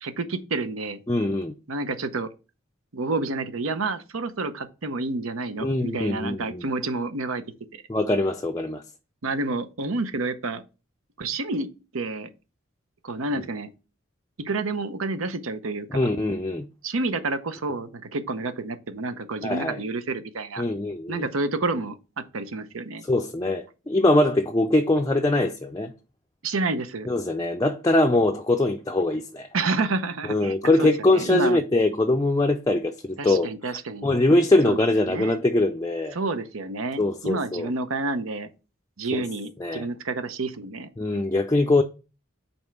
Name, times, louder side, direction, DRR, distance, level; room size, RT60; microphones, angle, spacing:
voice 1, 0.0-1.0 1.7-2.3 2.9-7.4 9.2-10.6 11.2-12.3 13.0-13.7 14.4-16.1 16.8-20.6 21.1-23.0 26.4-27.1 29.5-31.6 33.2-34.1 34.6-35.4 36.1-38.5 39.0-40.9, right 3 dB, 80° right, 0.8 m, -29 dB
voice 2, 1.1-1.5 5.6-6.6 7.9-8.8 15.9-16.7 19.4-19.8 20.6-21.3 23.1-25.9 27.1-29.5 30.3-36.2 37.0-37.7 39.1-39.2 39.6-39.9 41.0-41.8, left 2 dB, 15° left, 0.4 m, -22 dB
5.3 x 4.4 x 6.0 m
head